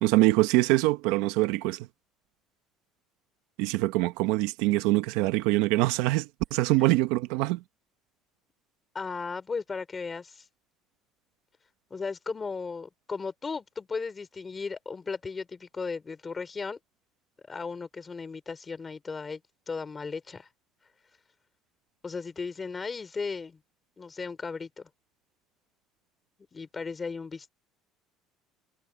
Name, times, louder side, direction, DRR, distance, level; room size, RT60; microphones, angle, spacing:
voice 1, 0.0-1.9 3.6-7.6, right 19 dB, 75° right, 1.0 m, -24 dB
voice 2, 8.9-10.4 11.9-16.8 17.5-19.4 19.7-20.5 22.0-23.6 24.0-24.9 26.5-27.5, left 4 dB, 15° left, 3.4 m, -36 dB
cardioid pair, 170°, 0 cm